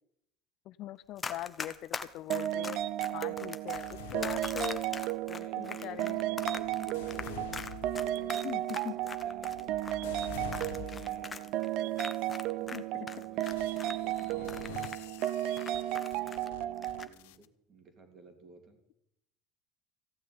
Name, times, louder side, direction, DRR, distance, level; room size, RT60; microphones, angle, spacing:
voice 1, 0.7-2.8 3.1-6.2 8.4-8.9 12.7-12.8, left 14 dB, 45° left, 17 dB, 0.5 m, -42 dB
Run, 1.2-12.8 13.1-16.5 16.8-17.1, left 5 dB, 15° left, 0.8 m, -41 dB
sound 1, 2.3-17.1, right 14 dB, 55° right, 0.5 m, -34 dB
sound 2, 3.7-5.2 5.9-11.4 12.0-12.4 13.4-17.5, left 10 dB, 90° left, 0.8 m, -48 dB
voice 2, 5.3-7.5 7.9-8.5 8.9-9.8 10.7-12.1 12.6-14.7 15.4-18.8, right 2 dB, 30° right, 7 dB, 2.6 m, -54 dB
14.5 x 6.5 x 9.7 m, 0.81 s
cardioid pair, 155°, 0 cm